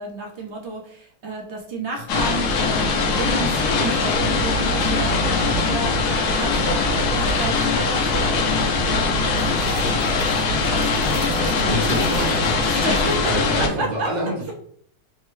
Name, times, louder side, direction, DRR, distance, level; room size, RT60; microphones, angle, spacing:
voice 1, 0.0-8.4 11.6-13.3 13.6-14.1, right 2 dB, 55° right, 0 dB, 0.9 m, -31 dB
sound 1, 2.1-13.7, left 3 dB, 90° left, 1.1 m, -21 dB
voice 2, 5.2-5.7 11.2-12.5 13.2-14.5, right 1 dB, 35° right, -4 dB, 1.0 m, -28 dB
sound 2, 9.3-12.5, right 6 dB, 85° right, 1.1 m, -41 dB
3.5 x 2.1 x 3.1 m, 0.62 s
omnidirectional pair, 1.6 m